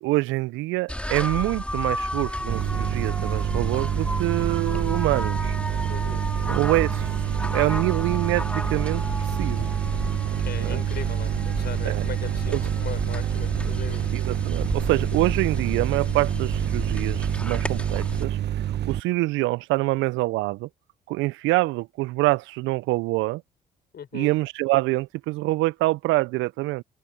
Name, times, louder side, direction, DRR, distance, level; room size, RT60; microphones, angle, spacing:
voice 1, 0.0-5.5 6.5-7.1 7.5-9.7 10.6-10.8 11.8-12.0 12.5-12.6 14.1-18.4 18.8-20.7 21.1-23.4 24.1-26.8, right 20 dB, 70° right, 1.1 m, -25 dB
sound 1, 0.9-18.2, left 1 dB, 5° left, 4.2 m, -32 dB
sound 2, 2.5-19.0, right 11 dB, 55° right, 1.3 m, -27 dB
voice 2, 5.9-6.2 10.5-14.0 23.9-24.3, left 8 dB, 50° left, 5.4 m, -38 dB
open air
hypercardioid pair, 45°, 21 cm